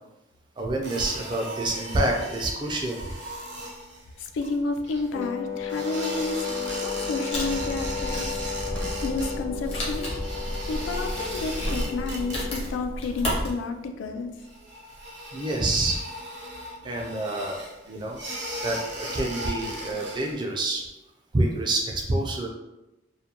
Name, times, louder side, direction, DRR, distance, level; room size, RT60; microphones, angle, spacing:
voice 1, 0.6-3.0 15.3-16.0 16.8-17.6 17.9-18.2 18.6-20.8 21.3-22.5, right 2 dB, 25° right, 0 dB, 0.3 m, -27 dB
sound 1, 0.8-5.3 5.7-9.4 9.6-12.7 13.0-13.5 13.8-13.9 14.4-20.4, equal, 70° right, 0.6 m, -37 dB
voice 2, 4.2-8.3 9.0-10.1 10.7-14.3, left 3 dB, 85° left, 5 dB, 0.3 m, -31 dB
Wind instrument woodwind instrument, 5.1-12.7, left 7 dB, 55° left, 1.1 m, -34 dB
Wood, 7.3-13.5, equal, 30° left, 0.6 m, -32 dB
2.4 x 2.2 x 2.8 m, 0.97 s
head